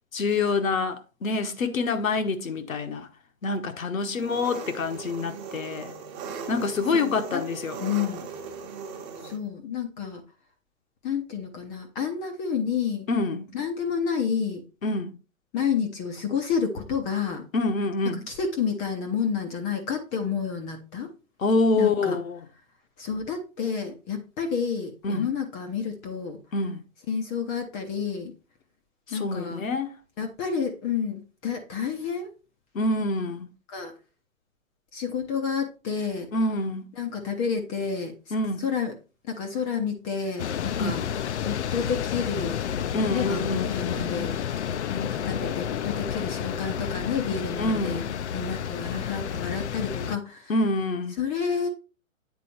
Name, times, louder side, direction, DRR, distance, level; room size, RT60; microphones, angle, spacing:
voice 1, 0.1-3.1 3.4-5.9 6.5-7.8 13.1-13.5 14.8-15.2 17.5-18.3 21.4-22.4 25.0-25.3 26.5-26.8 29.1-29.9 32.7-33.5 36.3-36.9 38.3-38.6 40.8-41.0 42.9-43.7 47.6-48.1 50.5-51.1, left 3 dB, 75° left, 1.2 m, -26 dB
Engine, 4.1-9.4, right 6 dB, 20° right, 1.0 m, -38 dB
voice 2, 6.9-7.4 7.8-8.3 9.2-10.2 11.0-13.1 13.5-14.6 15.5-17.4 18.3-21.1 21.8-22.2 23.0-26.4 27.1-28.3 29.1-29.6 30.2-32.3 33.7-33.9 34.9-36.3 37.0-38.3 38.6-38.9 39.3-41.0 41.4-42.6 43.1-44.5 44.9-48.0 48.3-50.5 51.2-51.7, left 6 dB, 15° left, 0.6 m, -30 dB
sound 1, 40.4-50.2, left 9 dB, 55° left, 0.6 m, -30 dB
8.6 x 4.1 x 4.3 m
figure-of-eight pair, 130°, 41 cm